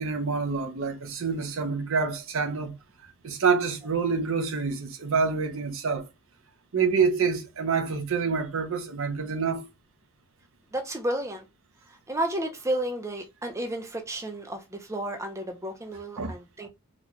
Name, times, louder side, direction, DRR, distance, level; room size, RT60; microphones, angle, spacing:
voice 1, 0.0-2.7 3.2-6.0 6.7-9.7 16.2-16.3, right 5 dB, 60° right, 0.7 m, -27 dB
voice 2, 10.7-11.4 12.1-16.7, right 1 dB, 15° right, 0.6 m, -32 dB
4.1 x 2.3 x 3.0 m
head